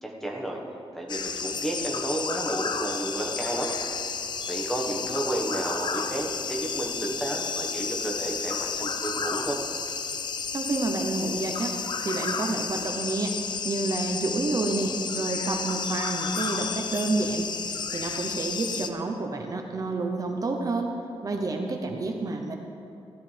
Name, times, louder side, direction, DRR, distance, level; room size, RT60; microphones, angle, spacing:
voice 1, 0.0-0.6 0.9-4.2 4.5-9.6, right 1 dB, 5° left, -1 dB, 1.4 m, -32 dB
sound 1, 1.1-18.9, left 5 dB, 45° left, 0.5 m, -32 dB
voice 2, 10.5-11.7 12.0-13.3 13.6-17.5 17.9-20.9 21.2-22.5, right 2 dB, 35° right, 3 dB, 0.8 m, -29 dB
16.0 x 11.5 x 3.4 m, 2.6 s
wide cardioid pair, 170°, 10 cm